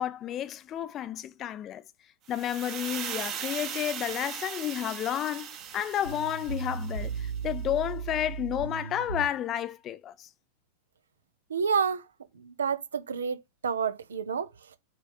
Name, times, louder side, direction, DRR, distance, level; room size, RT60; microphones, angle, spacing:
voice 1, 0.0-1.8 2.3-10.3, left 11 dB, 30° left, 0.5 m, -31 dB
sound 1, 2.3-7.3, right 8 dB, 35° right, 1.1 m, -39 dB
sound 2, 5.7-5.8 6.0-9.3, right 5 dB, 80° left, 1.1 m, -35 dB
voice 2, 11.5-12.0 12.3-14.5, right 6 dB, 70° right, 0.8 m, -29 dB
6.7 x 3.6 x 4.2 m
figure-of-eight pair, 90°, 0 cm